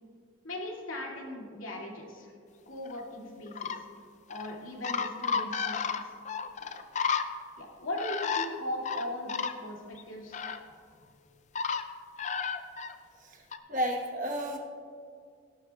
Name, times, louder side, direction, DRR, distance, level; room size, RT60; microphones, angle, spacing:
voice 1, 0.4-2.3 2.7-3.8 4.3-5.8 6.0-6.2 7.6-10.4, left 1 dB, 80° left, -2 dB, 2.3 m, -38 dB
sound 1, 2.9-3.0 3.5-3.8 4.3-4.5 4.8-7.2 8.0-8.5 8.8-9.5 10.0-10.1 10.3-10.6 11.5-11.8 12.2-12.9 13.5-13.6, left 6 dB, 35° left, 0.4 m, -32 dB
voice 2, 13.7-14.6, equal, 40° right, 1 dB, 1.2 m, -31 dB
16.5 x 12.0 x 2.3 m, 2.2 s
head